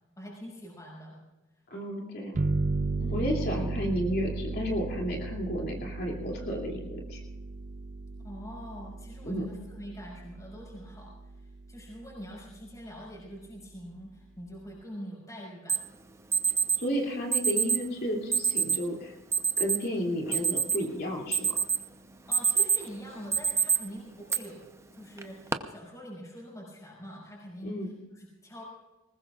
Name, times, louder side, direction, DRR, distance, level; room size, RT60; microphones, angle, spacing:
voice 1, 0.2-1.2 3.0-3.4 8.2-15.8 22.3-24.6 24.9-28.6, equal, 15° left, -4 dB, 5.7 m, -44 dB
voice 2, 1.7-2.4 3.1-7.2 9.2-9.4 16.8-19.2 19.6-21.5 27.6-27.9, equal, 50° left, -1 dB, 2.8 m, -32 dB
sound 1, 2.4-11.6, right 3 dB, 35° right, 0.4 m, -35 dB
Alarm, 15.7-15.8 16.3-16.8 17.3-17.8 18.3-18.8 19.3-19.8 20.2-20.9 21.3-21.8 22.2-22.9 23.3-23.8 24.3-24.4 25.2-25.5, right 6 dB, 15° right, 0.8 m, -25 dB
21.0 x 19.5 x 2.5 m, 1.1 s
head